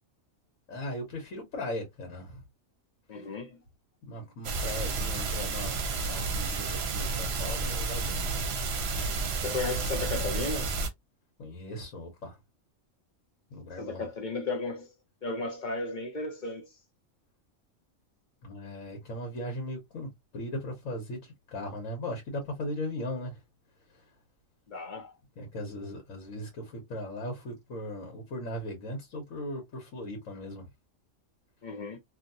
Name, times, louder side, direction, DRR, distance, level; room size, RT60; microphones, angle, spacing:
voice 1, 0.7-2.4 3.1-3.3 4.1-8.3 11.4-12.4 13.5-14.1 18.4-23.4 23.9-24.0 25.4-30.7, left 1 dB, 85° left, 1.4 m, -38 dB
voice 2, 3.1-3.6 9.4-10.7 13.8-14.9 15.2-16.7 24.7-25.1 31.6-32.0, left 3 dB, 45° left, 0.7 m, -34 dB
sound 1, 4.4-10.9, right 4 dB, 60° right, 0.9 m, -31 dB
2.8 x 2.8 x 2.6 m
omnidirectional pair, 1.3 m